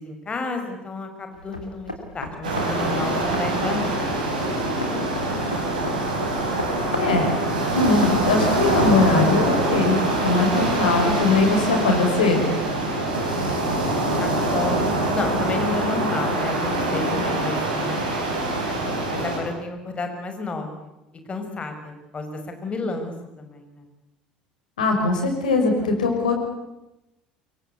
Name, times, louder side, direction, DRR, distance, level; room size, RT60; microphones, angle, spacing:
voice 1, 0.0-4.1 14.2-14.8 15.1-16.6 16.9-18.3 19.1-20.7 21.3-22.3 22.6-23.8, left 3 dB, 25° left, 6 dB, 6.1 m, -31 dB
sound 1, 1.3-11.9, left 1 dB, 90° left, 3.1 m, -35 dB
sound 2, 2.4-19.4, right 2 dB, 75° right, 6.8 m, -24 dB
voice 2, 7.7-12.6 24.8-26.3, left 3 dB, 75° left, 3 dB, 6.1 m, -21 dB
25.0 x 23.5 x 8.5 m, 0.93 s
figure-of-eight pair, 65°, 4 cm